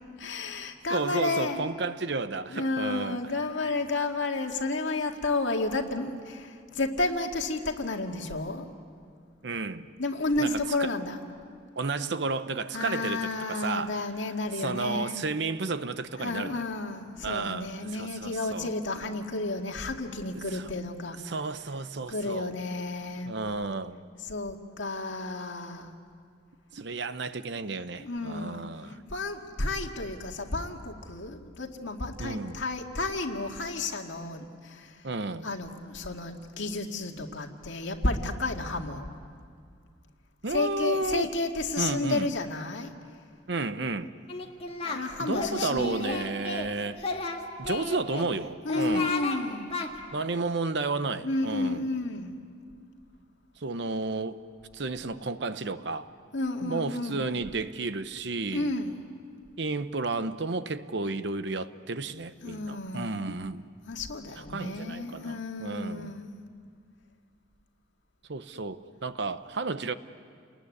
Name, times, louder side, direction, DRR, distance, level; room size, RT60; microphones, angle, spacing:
voice 1, 0.2-1.6 2.5-8.7 10.0-11.2 12.7-15.2 16.2-21.2 22.1-23.4 24.3-25.9 28.0-28.6 29.1-34.9 35.4-39.1 40.5-42.9 44.8-46.3 48.6-49.7 51.2-52.3 56.3-57.3 58.5-59.0 62.4-63.2 63.9-66.3, left 2 dB, 70° left, 2.1 m, -31 dB
voice 2, 0.9-3.2 9.4-9.9 10.4-10.9 11.8-14.0 14.5-16.7 17.2-18.7 20.5-20.7 21.2-22.5 23.2-24.0 26.7-29.0 32.2-32.6 35.0-35.5 37.2-37.3 40.4-41.3 41.8-42.3 43.5-44.1 45.2-47.0 47.6-49.1 50.1-51.8 53.6-54.4 54.7-56.1 56.6-58.7 59.6-63.7 64.4-66.2 68.3-69.9, right 3 dB, 60° right, 0.9 m, -32 dB
Singing, 44.3-45.0 45.3-46.7 47.0-48.3 48.7-49.4 49.7-49.9, left 3 dB, 30° left, 1.8 m, -33 dB
29.5 x 20.5 x 9.8 m
head